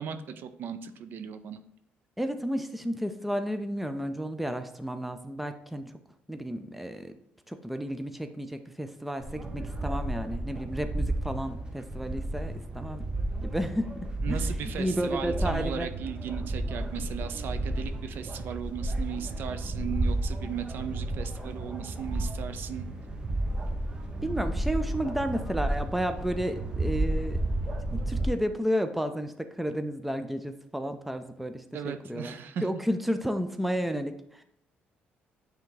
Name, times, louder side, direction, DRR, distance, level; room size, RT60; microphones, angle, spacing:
voice 1, 0.0-1.6 14.2-22.9 31.7-32.7, right 8 dB, 60° right, 9 dB, 0.6 m, -37 dB
voice 2, 2.2-5.9 6.3-7.2 7.5-13.0 13.4-14.4 14.8-15.9 24.2-27.4 27.9-32.4 32.6-34.4, equal, 5° right, 8 dB, 0.5 m, -32 dB
sound 1, 9.2-28.3, right 1 dB, 20° right, 0.9 m, -32 dB
9.1 x 3.5 x 3.9 m, 0.73 s
cardioid pair, 130°, 4 cm